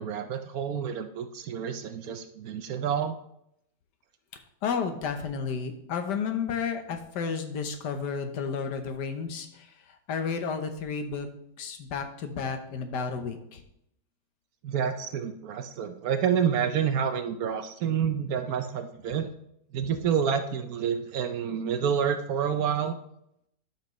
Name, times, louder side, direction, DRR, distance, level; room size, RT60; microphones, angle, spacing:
voice 1, 0.0-3.1 14.6-19.3 19.7-22.9, right 7 dB, 65° right, 8 dB, 1.0 m, -28 dB
voice 2, 4.6-9.7 10.1-11.3 11.6-13.6, left 6 dB, 80° left, 7 dB, 1.5 m, -32 dB
11.5 x 5.8 x 3.1 m, 0.76 s
omnidirectional pair, 1.8 m